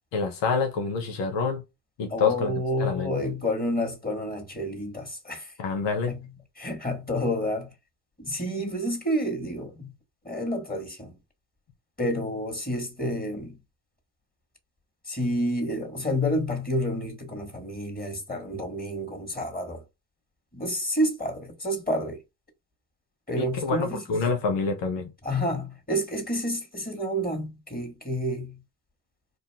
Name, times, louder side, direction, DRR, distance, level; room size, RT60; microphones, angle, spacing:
voice 1, 0.1-1.6 2.0-2.5 2.8-3.2 5.6-6.1 23.4-25.1, left 5 dB, 80° left, 1.0 m, -27 dB
voice 2, 2.1-5.5 6.1-6.3 6.6-7.7 8.2-9.9 10.2-11.2 12.0-13.6 15.1-19.8 20.5-22.2 23.3-24.2 25.2-28.6, equal, 20° left, 1.9 m, -29 dB
4.0 x 2.6 x 3.6 m
hypercardioid pair, 45°, 43 cm